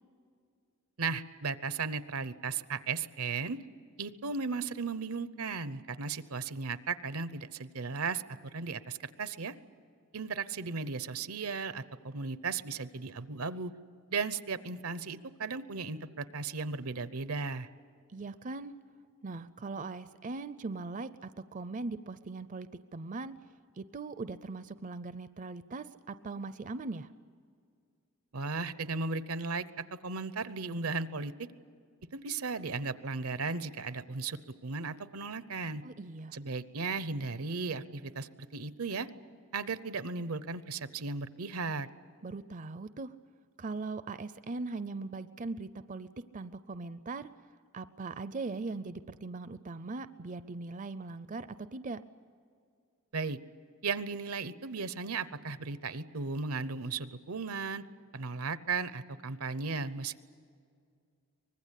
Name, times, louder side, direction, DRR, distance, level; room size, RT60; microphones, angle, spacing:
voice 1, 1.0-3.6 4.0-9.5 10.1-13.7 14.1-17.7 28.3-31.5 32.1-35.8 36.3-39.1 39.5-41.9 53.1-53.4 53.8-57.8 58.1-60.2, right 4 dB, 80° right, 14 dB, 0.8 m, -36 dB
voice 2, 18.1-18.7 19.2-23.3 23.8-27.1 35.8-36.4 42.2-43.1 43.6-46.1 46.3-47.3 47.7-52.0, right 3 dB, 35° right, 14 dB, 0.5 m, -40 dB
24.5 x 20.5 x 8.3 m, 2.3 s
head